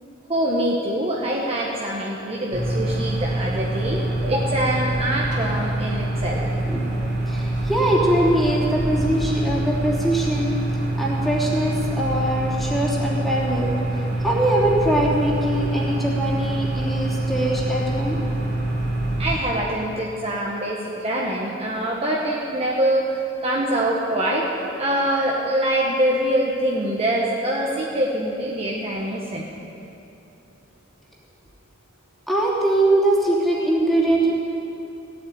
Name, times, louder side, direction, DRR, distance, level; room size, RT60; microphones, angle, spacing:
voice 1, 0.3-6.4 19.2-24.5 24.8-29.4, right 1 dB, 30° right, -3 dB, 1.4 m, -24 dB
sound 1, 2.5-19.3, right 1 dB, 60° right, 3.9 m, -25 dB
voice 2, 6.7-10.6 11.0-18.2 32.3-34.3, right 1 dB, ahead, -5 dB, 3.1 m, -22 dB
16.5 x 8.3 x 9.4 m, 2.8 s
head